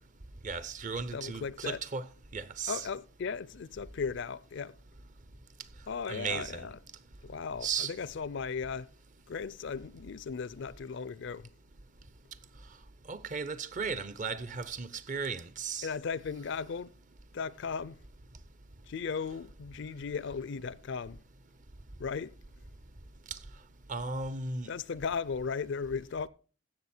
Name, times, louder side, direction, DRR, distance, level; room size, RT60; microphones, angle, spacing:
voice 1, 0.4-2.1 2.3-2.9 6.1-6.7 7.6-7.9 13.1-15.9 23.3-23.4 23.9-24.7, right 5 dB, 40° right, 0.7 m, -36 dB
voice 2, 1.1-1.8 2.7-4.7 5.9-6.8 7.2-8.9 9.3-11.5 15.8-16.9 17.3-17.9 18.9-21.2 22.0-22.3 24.7-26.3, left 5 dB, 60° left, 0.4 m, -36 dB
15.0 x 7.0 x 4.3 m
head